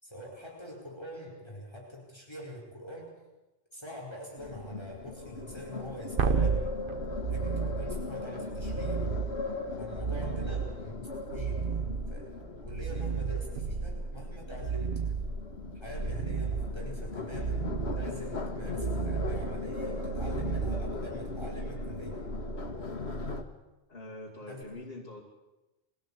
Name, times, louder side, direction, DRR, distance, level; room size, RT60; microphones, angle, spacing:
voice 1, 0.0-3.1 3.7-6.7 7.3-9.1 9.8-11.7 12.1-12.3 12.6-15.1 15.7-22.2 24.4-24.6, left 1 dB, 25° left, -2 dB, 4.6 m, -44 dB
sound 1, 4.4-23.4, left 2 dB, 85° left, 1.8 m, -38 dB
sound 2, 6.2-21.5 24.6-24.7, right 5 dB, 60° right, 1.2 m, -33 dB
voice 2, 10.2-10.6 23.9-25.2, left 2 dB, 65° left, -4 dB, 2.8 m, -44 dB
22.5 x 16.5 x 8.4 m, 1.1 s
omnidirectional pair, 1.1 m